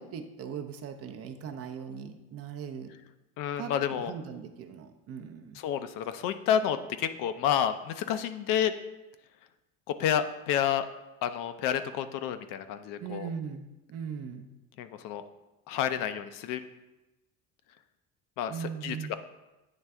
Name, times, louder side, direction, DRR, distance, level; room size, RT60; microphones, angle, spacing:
voice 1, 0.0-2.9 3.6-5.6 13.0-14.5 18.5-19.1, right 7 dB, 45° right, 7 dB, 0.6 m, -39 dB
voice 2, 3.4-4.1 5.6-8.7 10.0-10.9 11.2-13.3 14.8-15.2 15.7-16.6 18.4-19.1, left 9 dB, 70° left, 10 dB, 0.5 m, -30 dB
9.0 x 3.2 x 3.5 m, 1.0 s
cardioid pair, 135°, 34 cm